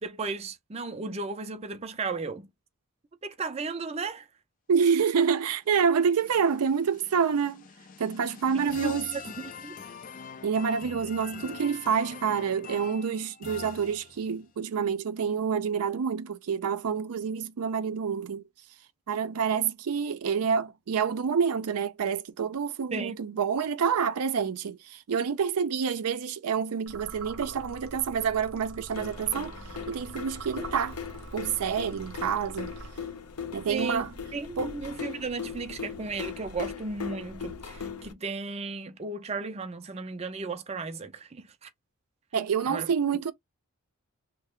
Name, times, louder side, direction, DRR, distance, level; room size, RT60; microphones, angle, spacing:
voice 1, 0.0-2.5 3.2-4.3 8.8-9.8 22.9-23.2 33.7-41.7 42.7-42.9, right 4 dB, 25° right, 0.4 m, -35 dB
voice 2, 4.7-7.6 8.0-9.1 10.4-18.4 19.1-29.5 29.9-31.0 31.3-32.7 33.5-34.1 34.6-34.7 42.3-43.3, right 6 dB, 90° right, 0.5 m, -27 dB
sound 1, 5.5-14.4, left 6 dB, 35° left, 0.3 m, -45 dB
sound 2, 26.9-33.4, right 3 dB, 60° right, 0.7 m, -44 dB
sound 3, 28.9-38.1, left 6 dB, 85° left, 0.6 m, -39 dB
3.2 x 2.1 x 3.5 m
head